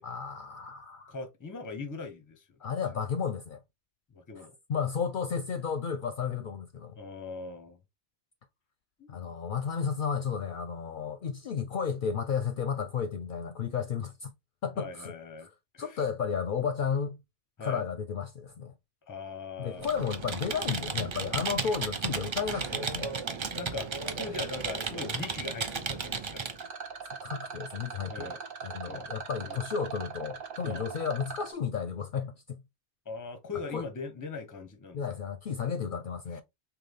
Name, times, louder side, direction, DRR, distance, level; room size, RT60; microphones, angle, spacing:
voice 1, 0.0-1.1 2.6-3.6 4.4-7.0 9.1-14.3 14.6-15.1 15.4-15.5 15.8-17.2 17.6-18.7 19.6-23.1 27.0-28.3 28.6-32.6 33.7-33.8 34.9-36.4, left 6 dB, 60° left, 0.6 m, -33 dB
voice 2, 1.1-2.6 4.1-4.6 6.9-7.8 9.0-9.3 14.8-15.5 15.7-16.0 17.6-17.8 19.1-19.9 23.6-23.9 24.1-26.4 28.1-28.4 28.9-29.1 29.5-29.6 30.6-30.8 33.1-35.0 36.3-36.4, left 4 dB, 20° left, 0.6 m, -40 dB
Computer keyboard, 19.8-26.6, right 5 dB, 40° right, 0.4 m, -34 dB
Rattle, 26.5-31.5, right 6 dB, 55° right, 0.9 m, -41 dB
3.9 x 2.9 x 3.2 m
omnidirectional pair, 1.1 m